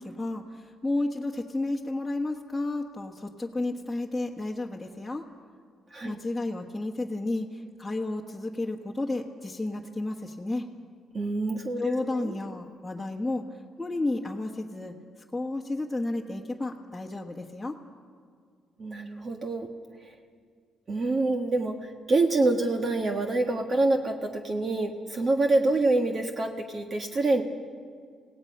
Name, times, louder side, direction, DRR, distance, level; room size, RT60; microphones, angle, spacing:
voice 1, 0.0-5.3 6.0-10.7 11.8-17.8, left 2 dB, 10° left, -2 dB, 1.5 m, -32 dB
voice 2, 11.1-12.3 18.8-19.7 20.9-27.4, right 2 dB, 40° right, 3 dB, 1.5 m, -26 dB
27.0 x 17.5 x 5.6 m, 2.1 s
cardioid pair, 90°, 0 cm